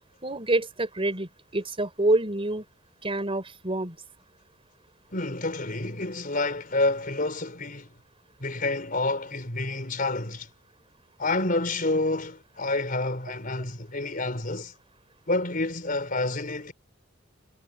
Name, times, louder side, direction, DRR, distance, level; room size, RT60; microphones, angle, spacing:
voice 1, 0.2-2.6 3.0-4.0, right 2 dB, 30° right, 4.3 m, -27 dB
voice 2, 5.1-7.9 8.4-10.5 11.2-14.7 15.3-16.7, left 2 dB, 45° left, 4.3 m, -28 dB
head